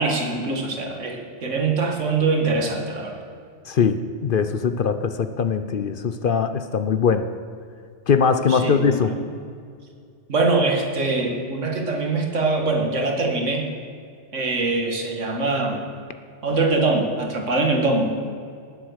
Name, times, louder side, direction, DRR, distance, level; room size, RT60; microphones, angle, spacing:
voice 1, 0.0-3.2 8.5-9.2 10.3-13.7 14.3-15.8 16.4-18.3, right 3 dB, 85° right, 2 dB, 2.2 m, -23 dB
voice 2, 3.7-7.3 8.1-9.1, left 6 dB, 55° left, 10 dB, 0.7 m, -21 dB
18.5 x 7.8 x 6.5 m, 2.3 s
omnidirectional pair, 1.2 m